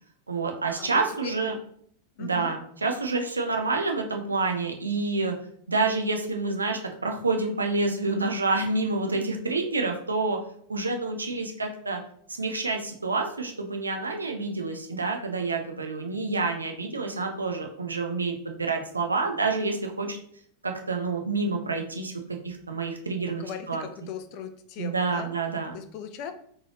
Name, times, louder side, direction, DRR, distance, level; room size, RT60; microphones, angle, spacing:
voice 1, 0.3-1.5 2.2-5.3 5.7-10.4 10.7-12.0 12.4-20.2 20.6-22.1 22.4-23.8 24.8-25.8, right 3 dB, 80° right, 3 dB, 0.6 m, -28 dB
voice 2, 2.2-2.5 23.3-25.3 25.7-26.3, left 8 dB, 45° left, 8 dB, 0.4 m, -38 dB
3.8 x 3.1 x 2.9 m, 0.62 s
figure-of-eight pair, 90°, 0 cm